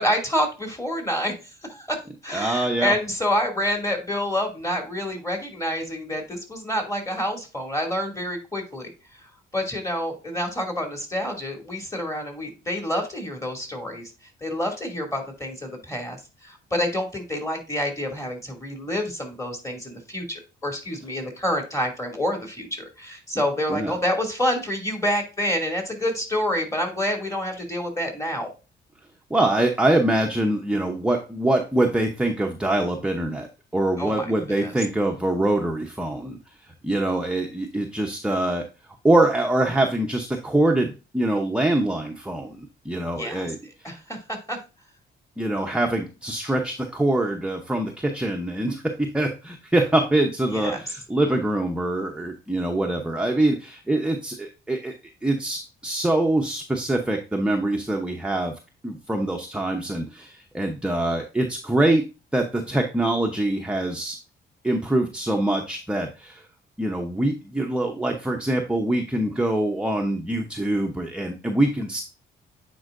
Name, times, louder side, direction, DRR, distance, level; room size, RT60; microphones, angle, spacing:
voice 1, 0.0-2.0 2.2-8.9 9.2-14.1 14.4-28.5 34.0-34.3 34.6-34.7 43.1-44.6 50.5-50.8, left 1 dB, 15° left, 2 dB, 2.6 m, -28 dB
voice 2, 2.3-2.9 23.7-23.9 29.3-33.5 33.7-36.4 36.8-38.6 39.0-43.6 45.4-54.9 55.2-58.5 58.8-62.0 62.3-64.2 64.6-66.4 66.8-72.0, right 1 dB, 5° right, 2 dB, 0.8 m, -24 dB
9.3 x 4.5 x 2.6 m, 0.30 s
cardioid pair, 90°, 20 cm